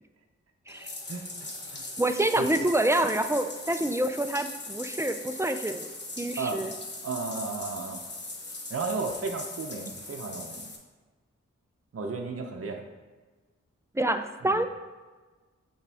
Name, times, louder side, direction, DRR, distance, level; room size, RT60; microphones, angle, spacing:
Bathtub (filling or washing), 0.7-10.8, left 2 dB, 35° left, 1.0 m, -40 dB
voice 1, 1.1-1.8 2.4-2.5 6.4-6.6 7.0-8.0 8.7-10.7 11.9-12.9 14.4-14.6, right 4 dB, 50° right, 3 dB, 0.7 m, -34 dB
voice 2, 2.0-5.9 6.2-6.7 13.9-14.7, right 1 dB, 10° right, 8 dB, 0.4 m, -27 dB
5.7 x 4.7 x 3.4 m, 1.3 s
cardioid pair, 50°, 29 cm